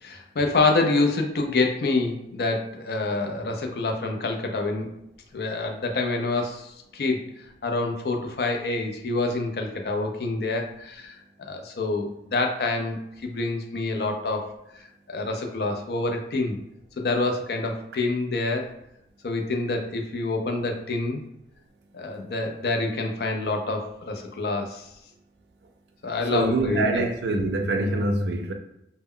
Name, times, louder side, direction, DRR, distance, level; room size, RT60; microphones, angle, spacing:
voice 1, 0.0-4.9 5.3-7.2 7.6-14.5 15.1-16.6 17.0-18.7 19.2-21.2 21.9-24.9 26.0-27.0, left 3 dB, 65° left, 0.4 m, -27 dB
voice 2, 26.3-28.5, right 2 dB, 80° right, 0.4 m, -24 dB
2.1 x 2.0 x 3.6 m
head